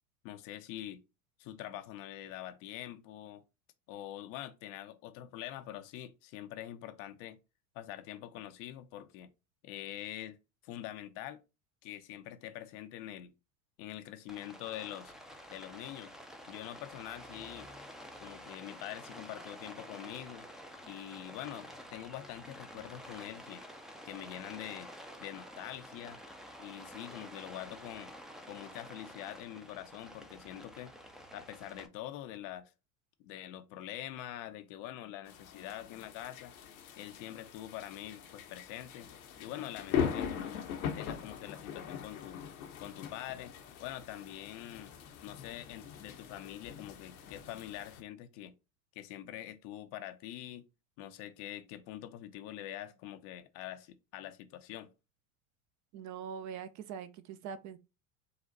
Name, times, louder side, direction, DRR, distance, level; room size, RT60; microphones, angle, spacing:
voice 1, 0.2-1.0 1.4-3.4 3.9-7.4 7.7-9.3 9.6-10.4 10.6-11.4 11.8-13.3 13.8-15.1 15.5-16.1 16.5-17.7 18.2-20.5 20.9-23.6 24.0-24.9 25.2-26.2 26.6-28.1 28.5-30.9 31.3-32.7 33.2-36.5 37.0-39.1 39.4-40.6 40.9-42.4 42.8-43.5 43.8-44.9 45.2-48.5 48.9-50.6 51.0-54.9, left 12 dB, 55° left, 0.6 m, -45 dB
Rain, 14.3-31.9, equal, ahead, 0.5 m, -50 dB
sound 1, 35.3-48.0, left 8 dB, 80° left, 1.0 m, -41 dB
voice 2, 55.9-57.8, right 7 dB, 45° right, 0.6 m, -43 dB
3.9 x 2.4 x 3.9 m
hypercardioid pair, 90°, 41 cm